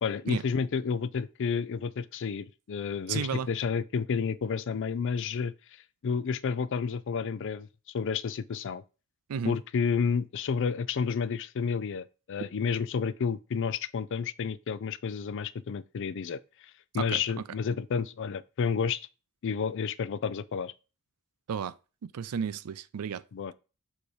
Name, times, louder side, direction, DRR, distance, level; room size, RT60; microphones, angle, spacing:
voice 1, 0.0-5.5 6.0-8.8 9.4-19.1 19.4-20.7 23.3-23.5, left 6 dB, 55° left, 0.4 m, -31 dB
voice 2, 3.1-3.5 9.3-9.6 16.9-17.2 21.5-21.7 22.0-23.2, right 7 dB, 85° right, 0.4 m, -33 dB
6.8 x 2.9 x 4.9 m
head